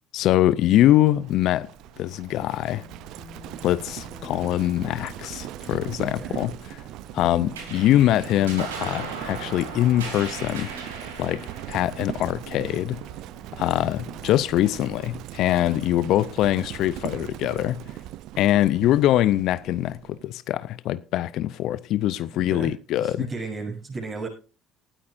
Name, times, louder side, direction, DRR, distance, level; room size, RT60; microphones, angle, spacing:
voice 1, 0.1-1.7 2.0-2.8 3.6-6.8 7.1-10.7 11.2-11.4 11.7-13.0 13.6-18.0 18.4-23.3, left 13 dB, 65° left, 0.5 m, -23 dB
Livestock farm animals working animals, 0.6-20.3, right 14 dB, 65° right, 0.5 m, -40 dB
sound 1, 2.7-14.8, left 6 dB, 25° left, 3.5 m, -48 dB
voice 2, 6.0-6.4 22.5-24.3, right 4 dB, 35° right, 7.6 m, -34 dB
sound 2, 7.5-14.3, right 5 dB, 90° right, 3.1 m, -38 dB
18.0 x 12.5 x 2.6 m
hypercardioid pair, 65°, 0 cm